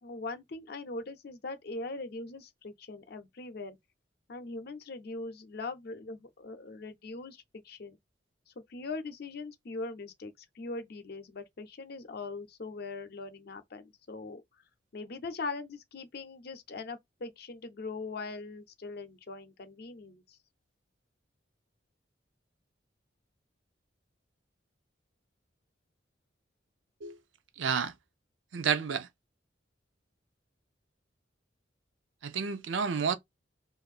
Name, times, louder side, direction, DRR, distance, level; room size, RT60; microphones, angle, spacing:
voice 1, 0.0-3.8 4.3-8.0 8.7-14.4 14.9-20.4, left 3 dB, 55° left, 0.6 m, -41 dB
voice 2, 27.6-27.9 28.5-29.1 32.2-33.2, right 6 dB, 80° right, 0.5 m, -30 dB
2.6 x 2.5 x 4.1 m
head